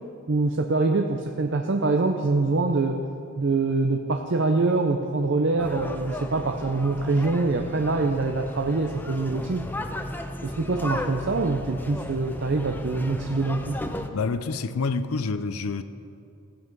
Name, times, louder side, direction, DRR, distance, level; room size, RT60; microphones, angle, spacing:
voice 1, 0.3-3.0 3.4-9.7 10.4-13.8, right 3 dB, 55° right, 4 dB, 0.6 m, -24 dB
sound 1, 5.6-14.1, left 1 dB, 10° left, 0.4 m, -35 dB
voice 2, 14.1-15.8, left 4 dB, 85° left, 12 dB, 0.6 m, -27 dB
16.5 x 7.7 x 5.3 m, 2.6 s
head